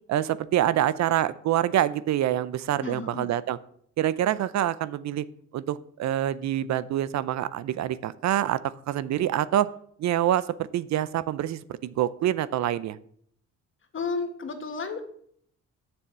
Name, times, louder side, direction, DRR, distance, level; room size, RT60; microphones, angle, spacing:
voice 1, 0.1-3.6 4.0-5.2 5.5-9.7 10.0-13.0, right 12 dB, 65° right, 17 dB, 0.5 m, -26 dB
voice 2, 2.8-3.3 13.9-15.1, left 4 dB, 40° left, 7 dB, 1.7 m, -32 dB
7.0 x 6.8 x 7.2 m, 0.65 s
cardioid pair, 90°, 30 cm